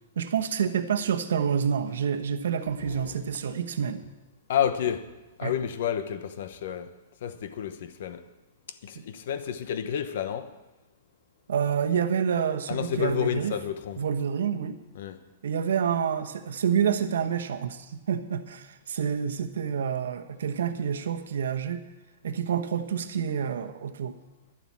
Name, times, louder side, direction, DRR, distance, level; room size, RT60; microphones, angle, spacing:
voice 1, 0.2-4.0 5.4-5.5 8.9-9.0 11.5-13.5 14.0-14.8 15.4-21.8 22.2-24.2, right 7 dB, 85° right, 1.1 m, -28 dB
voice 2, 2.8-3.2 4.5-5.1 5.4-6.9 7.2-8.3 8.7-10.5 12.7-14.0 14.9-15.2, left 9 dB, 60° left, 1.0 m, -30 dB
12.0 x 7.4 x 8.5 m
hypercardioid pair, 165°, 0 cm